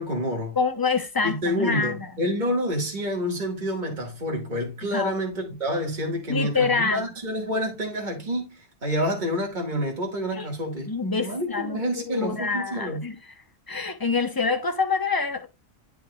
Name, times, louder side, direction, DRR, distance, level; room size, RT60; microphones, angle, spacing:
voice 1, 0.0-0.6 1.2-13.0, equal, 40° right, 2.0 m, -28 dB
voice 2, 0.6-2.1 4.9-5.2 6.3-7.1 10.3-10.5 10.9-13.2 13.7-15.5, left 4 dB, 20° left, 0.7 m, -26 dB
9.3 x 6.0 x 2.3 m
omnidirectional pair, 1.3 m